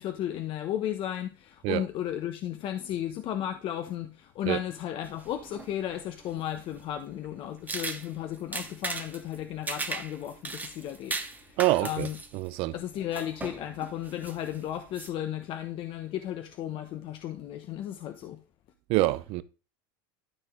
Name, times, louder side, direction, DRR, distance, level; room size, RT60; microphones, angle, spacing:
voice 1, 0.0-12.2 12.7-18.4, left 11 dB, 45° left, 0.9 m, -34 dB
sound 1, 5.0-15.1, right 3 dB, 15° right, 1.0 m, -39 dB
voice 2, 11.6-12.1 12.3-12.8 18.9-19.4, right 18 dB, 55° right, 0.6 m, -26 dB
12.5 x 4.3 x 3.7 m
hypercardioid pair, 100°, 12 cm